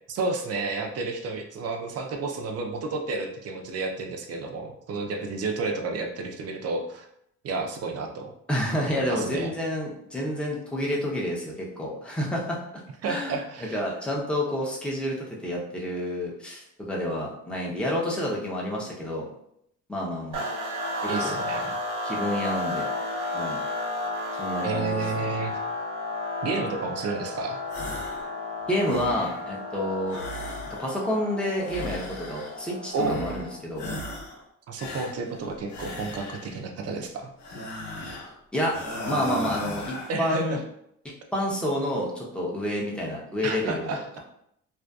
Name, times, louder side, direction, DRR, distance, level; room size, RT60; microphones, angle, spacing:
voice 1, 0.1-7.1 7.4-8.3 8.9-9.5 13.0-13.8 21.1-21.8 24.6-25.6 26.4-27.6 32.9-33.2 34.7-37.3 40.1-40.6 43.4-44.1, right 3 dB, 55° right, 4 dB, 0.5 m, -31 dB
voice 2, 8.5-12.6 13.0-13.4 13.7-19.3 19.9-20.4 21.2-21.4 22.0-22.9 23.3-23.6 24.4-25.0 28.7-30.2 30.7-33.9 38.5-38.7 39.0-40.6 41.3-43.9, left 1 dB, 5° left, -3 dB, 0.6 m, -29 dB
sound 1, 20.3-33.7, left 2 dB, 90° right, 0.7 m, -33 dB
sound 2, 27.7-28.3 28.6-29.5 30.1-31.1 31.6-32.6 32.9-33.5 33.8-34.4 34.8-36.6 37.4-38.3 38.7-40.2, left 1 dB, 70° left, 0.8 m, -36 dB
2.6 x 2.4 x 2.3 m, 0.74 s
cardioid pair, 90°, 30 cm